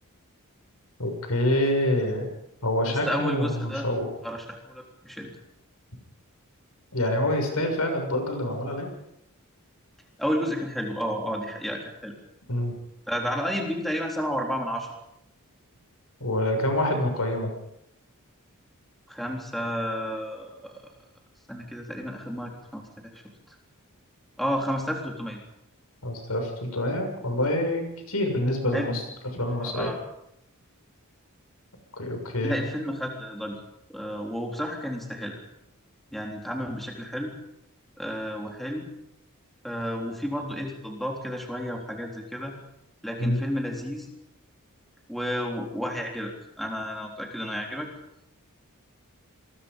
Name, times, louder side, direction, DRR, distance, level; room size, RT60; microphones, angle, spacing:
voice 1, 1.0-2.3 2.6-4.1 6.9-8.9 12.5-12.7 16.2-17.5 26.0-29.0 29.3-29.9 32.0-32.5 43.2-43.4, left 1 dB, 80° left, 4 dB, 6.9 m, -26 dB
voice 2, 2.9-3.9 4.2-5.3 10.2-12.1 13.1-14.9 19.1-20.7 21.5-22.8 24.4-25.4 28.7-28.9 29.5-30.0 32.4-33.6 33.9-35.4 36.1-37.3 38.0-38.9 39.6-42.5 43.0-44.1 45.1-46.3 46.6-47.9, equal, ahead, 0 dB, 3.9 m, -31 dB
27.5 x 22.0 x 5.4 m, 0.80 s
head